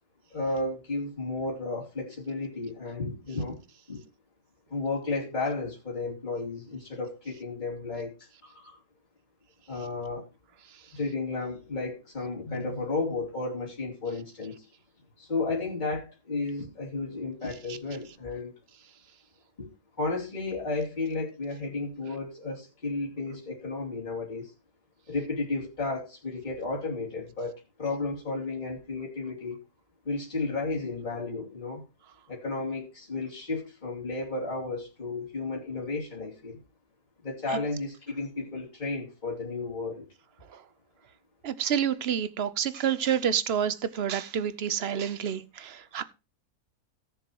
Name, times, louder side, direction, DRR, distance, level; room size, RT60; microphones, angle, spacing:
voice 1, 0.3-3.6 3.9-4.0 4.7-8.8 9.7-10.3 10.9-14.7 15.2-18.5 19.6-19.7 20.0-24.5 25.1-29.6 30.0-31.8 32.3-36.6 37.2-40.1, left 3 dB, 30° left, 3.0 m, -33 dB
voice 2, 41.4-46.0, right 8 dB, 55° right, 0.7 m, -28 dB
18.0 x 6.9 x 2.9 m
omnidirectional pair, 1.7 m